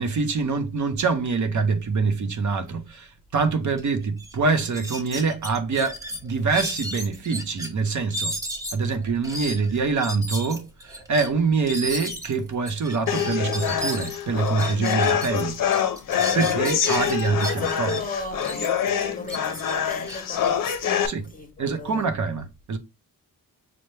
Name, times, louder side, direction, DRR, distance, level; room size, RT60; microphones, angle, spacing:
voice 1, 0.0-8.4 8.7-15.6 16.3-18.0 21.0-21.3 21.6-22.8, right 4 dB, 55° right, 0.6 m, -25 dB
sound 1, 3.8-3.9 4.2-4.3 4.7-7.7 8.1-15.4 15.7-18.0 18.4-21.3, equal, 10° right, 0.8 m, -34 dB
sound 2, 13.1-21.1, left 8 dB, 65° left, 0.6 m, -25 dB
voice 2, 16.1-16.4 17.4-22.1, left 3 dB, 25° left, 0.8 m, -35 dB
5.4 x 2.1 x 3.2 m
wide cardioid pair, 145°, 35 cm